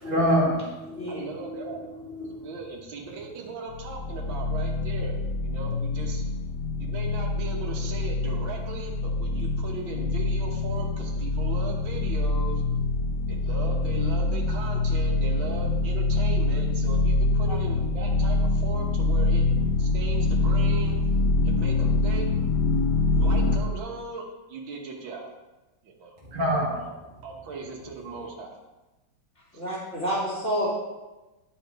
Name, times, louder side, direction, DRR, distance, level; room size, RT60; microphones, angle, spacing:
voice 1, 0.0-1.9 2.1-2.4 26.3-26.8, equal, 25° right, -6 dB, 1.7 m, -26 dB
voice 2, 1.1-1.8 2.4-6.2 6.8-12.6 13.3-19.4 19.8-21.0 21.4-22.3 23.2-25.3 25.8-26.2 26.8-26.9 27.2-28.5 29.5-29.6, right 4 dB, 70° right, 0 dB, 2.0 m, -38 dB
sound 1, 3.7-23.6, left 2 dB, 65° left, 1.1 m, -25 dB
voice 3, 29.5-30.7, equal, 35° left, -10 dB, 3.2 m, -28 dB
10.5 x 5.2 x 4.7 m, 1.1 s
omnidirectional pair, 2.2 m